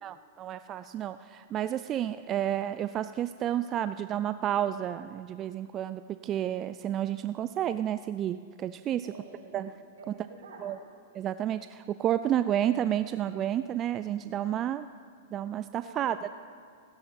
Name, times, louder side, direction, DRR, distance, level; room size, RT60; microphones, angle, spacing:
voice 1, 0.0-9.1 9.5-9.7 10.6-10.8 11.1-14.9 15.3-16.3, right 11 dB, 30° right, 12 dB, 0.4 m, -31 dB
voice 2, 9.0-10.8 15.8-16.3, right 2 dB, 75° right, -2 dB, 5.0 m, -49 dB
15.0 x 11.5 x 7.3 m, 2.3 s
hypercardioid pair, 115°, 0 cm